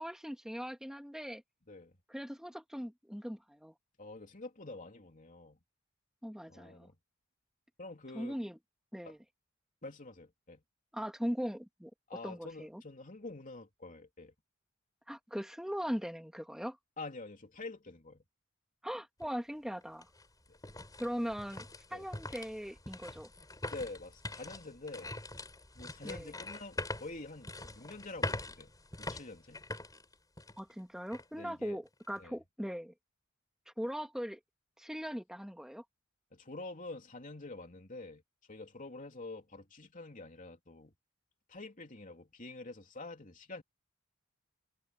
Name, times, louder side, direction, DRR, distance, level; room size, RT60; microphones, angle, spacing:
voice 1, 0.0-1.4 2.1-3.7 6.2-6.9 8.1-8.6 8.9-9.2 10.9-11.9 12.2-12.8 15.1-16.8 18.8-20.1 21.0-21.7 21.9-23.3 26.0-26.3 30.6-32.9 33.8-34.4 34.8-35.8, equal, 5° right, 2.1 m, -39 dB
voice 2, 4.0-5.6 6.5-7.0 7.8-8.4 9.0-9.1 9.8-10.6 12.1-14.3 17.0-18.2 20.5-20.6 21.9-22.1 23.7-25.1 25.7-28.7 29.0-29.6 31.3-31.8 32.2-32.4 36.3-38.2 38.5-40.9 41.5-43.6, left 2 dB, 40° left, 3.4 m, -47 dB
sound 1, 19.2-19.3 19.8-30.7 31.1-31.2 31.8-32.2, left 2 dB, 20° left, 6.1 m, -43 dB
head